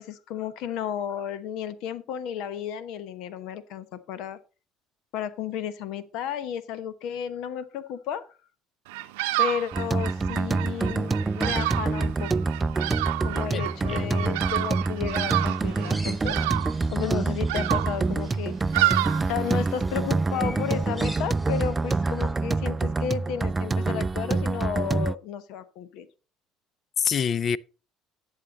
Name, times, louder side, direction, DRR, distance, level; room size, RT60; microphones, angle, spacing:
voice 1, 0.0-4.4 5.1-8.3 9.4-12.3 13.2-16.4 16.9-18.6 19.3-26.1, left 9 dB, 70° left, 0.9 m, -33 dB
Bird vocalization bird call bird song, 8.9-19.8, right 18 dB, 80° right, 0.6 m, -30 dB
sound 1, 9.7-25.1, right 3 dB, 25° right, 0.4 m, -26 dB
voice 2, 13.5-14.4 27.0-27.6, left 7 dB, 45° left, 0.5 m, -27 dB
sound 2, 15.1-22.3, equal, 5° left, 3.4 m, -45 dB
11.0 x 7.6 x 4.0 m
hypercardioid pair, 75°, 0 cm